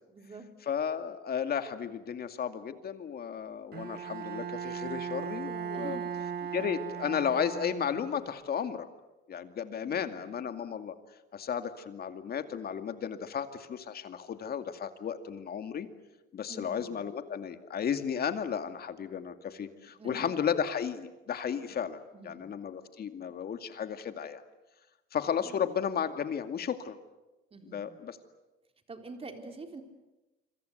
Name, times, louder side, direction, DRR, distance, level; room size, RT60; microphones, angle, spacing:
voice 1, 0.1-0.5 5.7-6.1 6.4-6.5 9.8-10.3 16.5-17.0 19.9-20.3 21.6-21.8 22.1-22.5 25.4-25.6 27.5-27.9 28.9-29.8, right 3 dB, 25° right, 5 dB, 3.9 m, -46 dB
voice 2, 0.7-6.0 6.5-8.9 9.3-10.9 11.3-15.9 16.3-24.4 25.1-27.0 27.7-28.2, left 7 dB, 45° left, 8 dB, 2.3 m, -34 dB
Bowed string instrument, 3.7-8.3, right 7 dB, 50° right, 1.7 m, -38 dB
27.0 x 25.5 x 8.1 m, 1.0 s
cardioid pair, 110°, 21 cm